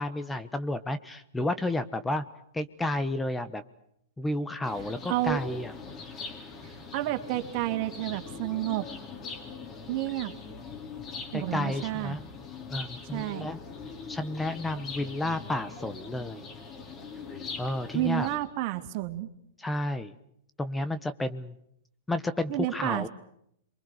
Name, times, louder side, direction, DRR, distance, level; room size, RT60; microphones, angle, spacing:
voice 1, 0.0-2.2 2.5-3.6 4.2-5.7 11.3-12.3 12.7-13.6 14.1-16.4 17.6-18.3 19.6-20.1 20.6-21.6 22.1-23.1, left 1 dB, 10° left, 11 dB, 1.3 m, -31 dB
sound 1, 4.6-18.4, left 5 dB, 30° left, 4.5 m, -42 dB
voice 2, 5.1-5.4 6.6-8.9 9.9-10.3 11.3-12.2 13.1-13.5 17.9-19.3 22.5-23.1, right 16 dB, 45° right, 8 dB, 2.6 m, -30 dB
28.0 x 24.0 x 6.7 m, 0.72 s
hypercardioid pair, 115°, 0 cm